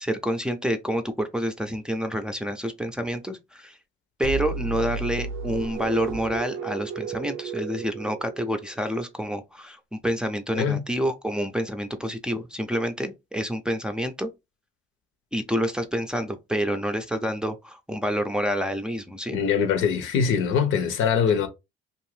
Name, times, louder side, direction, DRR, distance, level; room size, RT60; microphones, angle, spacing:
voice 1, 0.0-3.8 4.2-14.3 15.3-19.4, equal, 5° right, 0.5 m, -28 dB
sound 1, 4.2-9.0, right 5 dB, 80° right, 0.5 m, -33 dB
voice 2, 19.3-21.5, left 7 dB, 85° left, 0.7 m, -23 dB
2.7 x 2.5 x 3.2 m
cardioid pair, 90°, 20 cm